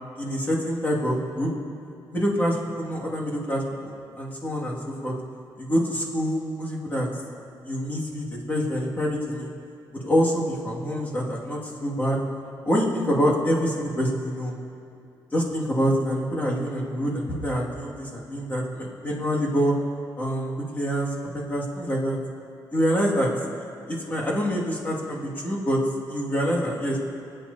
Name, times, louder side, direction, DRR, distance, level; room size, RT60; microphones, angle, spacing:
voice 1, 0.2-1.5 2.1-5.1 5.6-7.1 7.6-9.5 9.9-12.2 12.7-14.5 15.3-19.8 20.2-22.2 22.7-23.3 23.9-25.8 26.1-27.0, equal, 25° left, -4 dB, 2.1 m, -26 dB
26.0 x 9.0 x 2.8 m, 2.5 s
wide cardioid pair, 145°, 8 cm